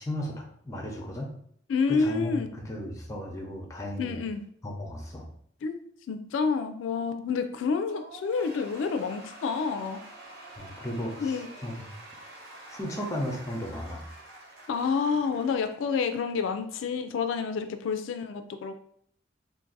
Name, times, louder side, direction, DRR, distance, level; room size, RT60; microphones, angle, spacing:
voice 1, 0.0-1.3 1.9-4.2 4.6-5.3 10.6-11.9 12.7-14.1, left 1 dB, 15° left, 1 dB, 0.6 m, -35 dB
voice 2, 1.7-2.5 4.0-4.4 5.6-5.8 6.1-10.0 11.2-11.5 14.7-18.8, left 5 dB, 85° left, 7 dB, 0.3 m, -29 dB
Cheering / Applause / Crowd, 7.9-16.5, right 2 dB, 55° right, 0.9 m, -47 dB
2.5 x 2.5 x 3.9 m, 0.65 s
head